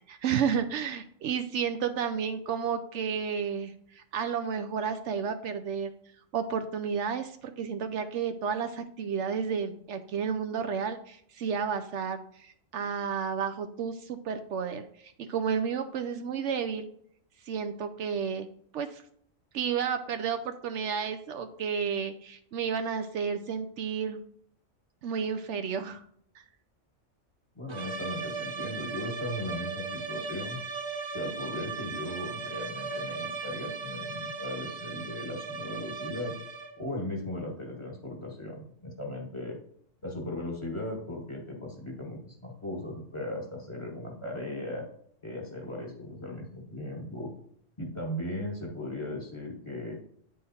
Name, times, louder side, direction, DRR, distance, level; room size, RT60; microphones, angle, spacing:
voice 1, 0.0-5.9 6.3-16.9 17.5-18.5 18.7-19.0 19.5-24.2 25.0-26.0, right 7 dB, 70° right, 8 dB, 0.9 m, -32 dB
voice 2, 27.5-30.6 31.1-36.4 36.8-39.6 40.0-44.8 45.2-47.3 47.8-50.0, left 1 dB, 25° left, 0 dB, 1.6 m, -37 dB
sound 1, 27.7-36.9, right 5 dB, 30° right, 0.6 m, -37 dB
9.1 x 3.7 x 4.2 m, 0.64 s
omnidirectional pair, 1.3 m